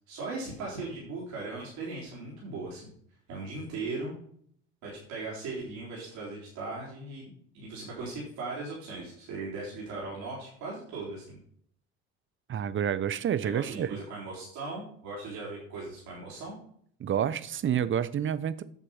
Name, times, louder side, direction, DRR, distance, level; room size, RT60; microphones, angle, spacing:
voice 1, 0.1-2.9 3.3-4.1 4.8-7.3 7.5-11.4 13.4-16.6, right 3 dB, 70° right, 3.8 m, -38 dB
voice 2, 12.5-13.9 17.0-18.6, right 9 dB, 40° right, 0.8 m, -29 dB
8.6 x 6.6 x 5.6 m
supercardioid pair, 70°, 30 cm